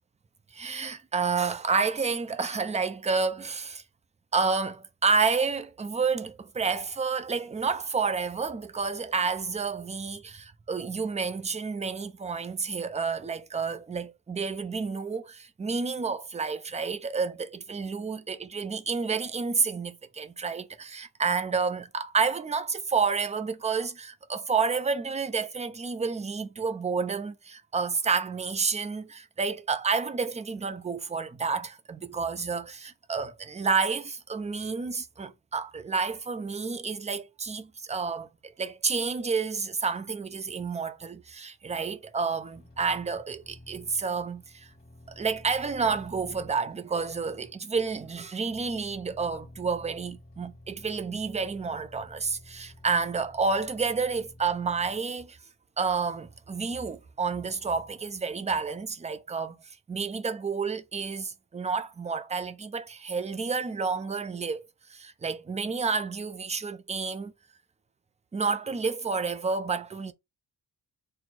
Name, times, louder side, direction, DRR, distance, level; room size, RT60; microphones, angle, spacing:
voice 1, 0.5-3.8 4.3-44.7 45.1-55.4 55.8-67.3 68.3-70.1, right 5 dB, 15° right, 0.3 m, -30 dB
sound 1, 42.4-55.0, left 1 dB, 20° left, 1.5 m, -51 dB
4.4 x 2.0 x 4.0 m
wide cardioid pair, 120°, 44 cm